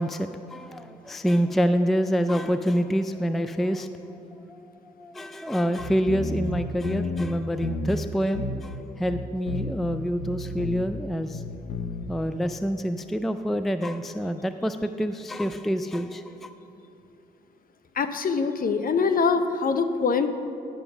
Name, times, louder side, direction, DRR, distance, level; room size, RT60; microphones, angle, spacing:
voice 1, 0.0-11.4 12.1-16.5, equal, ahead, 10 dB, 0.4 m, -27 dB
sound 1, 5.8-7.3 7.6-8.0 8.3-8.8 9.1-11.0 11.3-12.1, left 3 dB, 85° left, 0.7 m, -32 dB
voice 2, 18.0-20.3, left 5 dB, 45° left, 9 dB, 0.7 m, -23 dB
10.0 x 5.4 x 5.9 m, 2.9 s
supercardioid pair, 50°, 21 cm